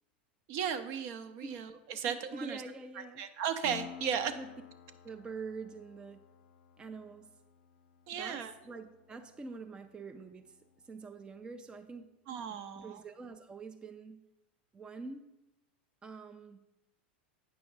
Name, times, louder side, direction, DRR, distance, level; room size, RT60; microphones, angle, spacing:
voice 1, 0.5-2.6 3.2-4.3 8.1-8.5 12.3-13.0, right 8 dB, 55° right, 10 dB, 0.7 m, -36 dB
voice 2, 2.1-3.3 4.4-4.5 5.0-6.2 6.8-7.3 8.1-10.6 10.8-12.1 12.4-14.2 14.7-15.3 16.0-16.6, right 4 dB, 15° right, 7 dB, 0.4 m, -45 dB
Piano, 3.6-11.0, left 9 dB, 85° left, 0.5 m, -53 dB
8.8 x 5.7 x 4.0 m, 0.93 s
hypercardioid pair, 115°, 6 cm